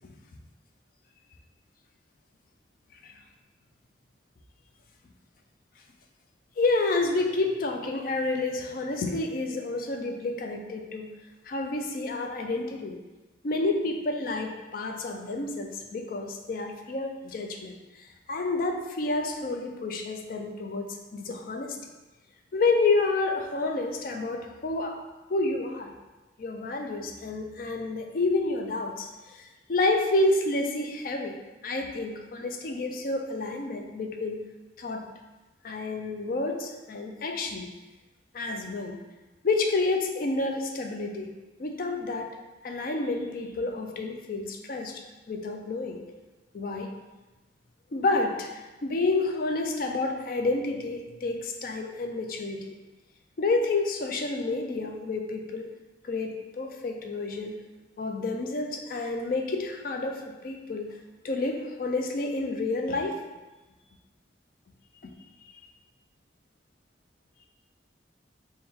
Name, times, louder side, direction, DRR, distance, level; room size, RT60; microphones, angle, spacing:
voice 1, 6.6-11.1 11.5-13.0 13.4-17.7 18.3-21.8 22.5-25.0 25.3-25.9 26.4-31.4 31.6-34.4 34.8-35.1 35.6-37.7 38.3-39.0 39.4-41.3 41.6-42.3 42.6-46.0 46.5-46.9 47.9-52.8 53.4-55.7 56.0-57.6 58.0-60.9 61.2-63.2, left 3 dB, 50° left, 3 dB, 0.4 m, -29 dB
3.5 x 2.2 x 4.2 m, 1.1 s
head